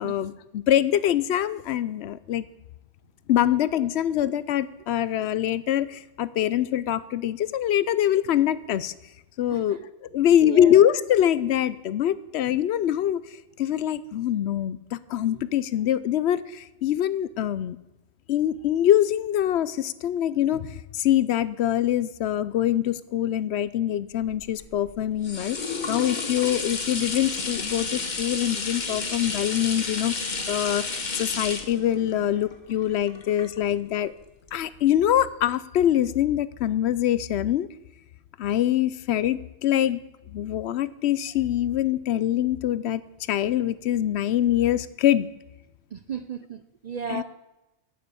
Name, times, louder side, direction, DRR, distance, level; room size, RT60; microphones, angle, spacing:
voice 1, 0.0-2.4 3.3-8.9 9.4-13.2 13.6-17.8 18.3-25.6 25.9-30.2 30.5-34.1 34.5-37.7 38.4-40.0 40.3-43.0 43.3-45.3 47.1-47.2, left 11 dB, 75° left, 17 dB, 0.8 m, -24 dB
voice 2, 9.5-9.9 10.4-10.7 28.9-29.0 45.9-47.2, right 6 dB, 50° right, 11 dB, 0.5 m, -35 dB
sound 1, 24.2-34.0 34.5-34.6, left 4 dB, 45° left, 1.2 m, -32 dB
8.7 x 7.9 x 8.4 m, 0.96 s
omnidirectional pair, 1.1 m